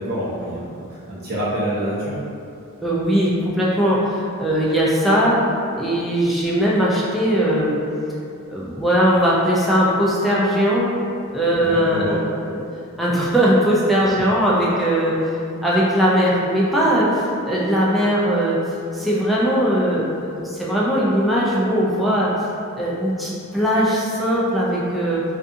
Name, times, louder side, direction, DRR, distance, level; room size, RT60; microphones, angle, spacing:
voice 1, 0.0-2.2 11.6-12.2, right 1 dB, 45° right, -8 dB, 0.7 m, -27 dB
voice 2, 2.8-5.4 5.7-7.8 8.5-10.9 11.3-12.1 13.0-15.1 15.6-18.6 18.9-22.3 22.7-25.2, equal, ahead, -7 dB, 0.3 m, -19 dB
2.6 x 2.4 x 2.5 m, 2.6 s
head